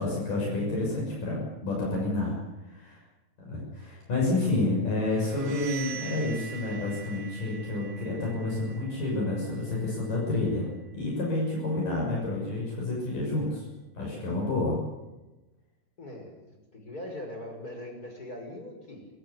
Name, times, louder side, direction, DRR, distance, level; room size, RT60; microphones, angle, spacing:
voice 1, 0.0-2.4 2.7-3.0 3.5-10.7 10.9-13.7 14.0-14.8, left 2 dB, 55° left, -3 dB, 8.2 m, -29 dB
sound 1, 5.1-10.7, right 6 dB, 75° right, 4.7 m, -44 dB
voice 2, 16.0-19.1, left 1 dB, 20° left, 3 dB, 6.3 m, -41 dB
28.5 x 16.0 x 9.7 m, 1.1 s
omnidirectional pair, 4.7 m